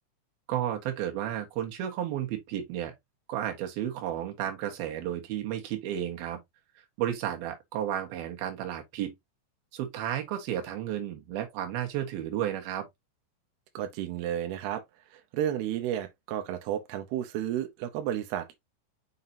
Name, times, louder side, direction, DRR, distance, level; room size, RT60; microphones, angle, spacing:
voice 1, 0.5-2.9 3.3-6.4 7.0-9.1 9.7-12.9, right 11 dB, 65° right, 2.7 m, -32 dB
voice 2, 13.7-14.8 15.1-18.6, right 11 dB, 85° right, 2.3 m, -32 dB
6.5 x 5.8 x 2.7 m
omnidirectional pair, 5.8 m